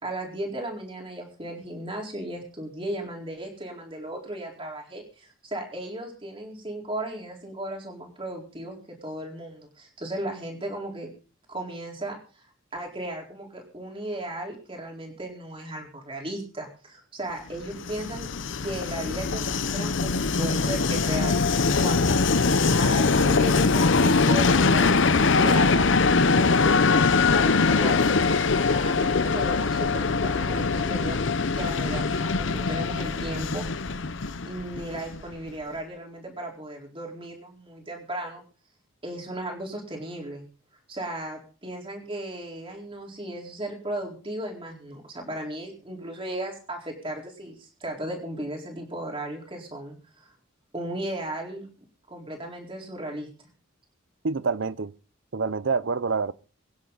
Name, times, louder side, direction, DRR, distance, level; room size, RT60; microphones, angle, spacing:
voice 1, 0.0-11.1 11.5-12.2 12.7-18.3 18.6-21.4 21.8-22.2 22.4-24.9 25.4-31.2 31.5-33.7 34.4-38.4 39.0-40.4 40.9-50.3 50.7-51.7 52.1-53.3, right 1 dB, 25° right, 4.2 m, -36 dB
Train, 17.6-35.3, left 4 dB, 65° left, 0.8 m, -22 dB
voice 2, 54.2-54.9 55.3-56.3, right 4 dB, 65° right, 0.7 m, -26 dB
23.5 x 10.5 x 4.0 m
head